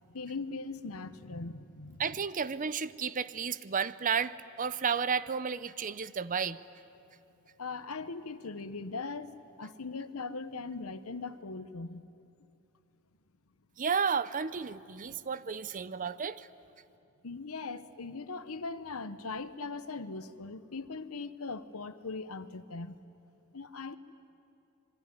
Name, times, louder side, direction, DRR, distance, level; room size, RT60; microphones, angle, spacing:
voice 1, 0.1-2.2 7.6-9.3 9.6-12.0 15.1-15.2 17.2-23.0 23.5-24.0, left 3 dB, 75° left, 12 dB, 1.0 m, -40 dB
voice 2, 2.0-6.6 13.8-16.5, right 6 dB, 35° right, 16 dB, 0.6 m, -32 dB
26.0 x 22.5 x 9.7 m, 2.7 s
head